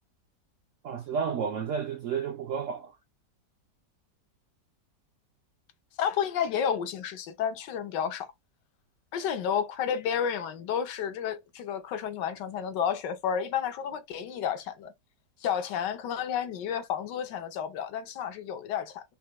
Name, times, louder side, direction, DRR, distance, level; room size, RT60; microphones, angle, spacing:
voice 1, 0.8-3.0, right 6 dB, 75° right, 0.7 m, -31 dB
voice 2, 6.0-8.3 9.1-14.9 15.4-19.0, left 8 dB, 80° left, 1.4 m, -31 dB
5.5 x 2.1 x 2.8 m
omnidirectional pair, 1.9 m